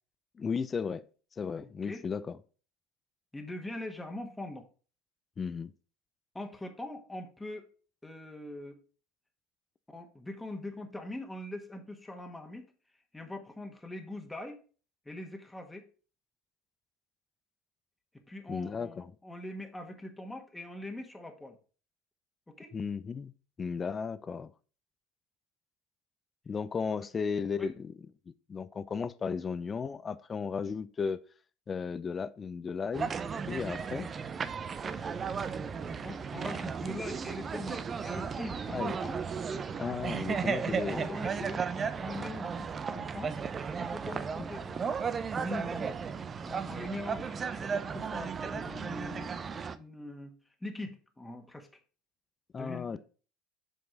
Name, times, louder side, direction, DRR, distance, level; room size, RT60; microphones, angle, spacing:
voice 1, 0.4-1.0 1.4-2.4 5.4-5.7 18.5-19.1 22.7-23.3 23.6-24.5 26.5-27.9 28.3-31.2 31.7-33.1 33.5-34.1 38.7-39.0 39.8-41.2 41.7-41.8 52.5-53.0, left 5 dB, 30° left, 0.6 m, -35 dB
voice 2, 3.3-4.6 6.3-7.7 8.0-8.8 9.9-12.7 13.1-14.6 15.0-15.8 18.3-21.6 22.5-22.7 27.6-27.7 36.0-39.2 40.5-43.4 43.7-46.0 46.5-51.7 52.5-53.0, left 1 dB, 10° left, 1.6 m, -42 dB
sound 1, 32.9-49.8, right 6 dB, 30° right, 0.6 m, -35 dB
7.9 x 5.1 x 3.9 m
hypercardioid pair, 75°, 0 cm